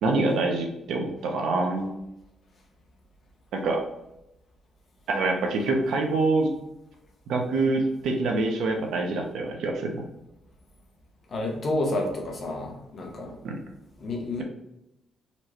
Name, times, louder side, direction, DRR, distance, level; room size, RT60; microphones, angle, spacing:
voice 1, 0.0-2.0 3.5-3.8 5.1-6.5 7.3-10.0 13.4-13.6, right 3 dB, 85° right, 2 dB, 0.8 m, -25 dB
voice 2, 11.3-13.3 14.0-14.4, left 2 dB, 40° left, 1 dB, 0.9 m, -29 dB
4.2 x 3.2 x 3.1 m, 0.88 s
cardioid pair, 155°, 0 cm